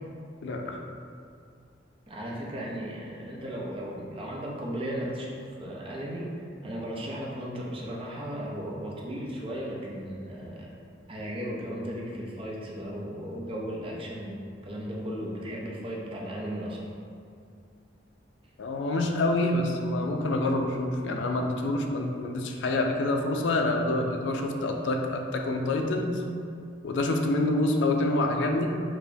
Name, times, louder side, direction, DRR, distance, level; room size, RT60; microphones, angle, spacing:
voice 1, 0.4-0.8 18.6-26.2 26.8-28.7, left 2 dB, 70° left, 3 dB, 0.4 m, -27 dB
voice 2, 2.1-10.8 11.1-16.8, equal, 30° right, -3 dB, 0.5 m, -36 dB
4.6 x 2.1 x 2.6 m, 2.4 s
head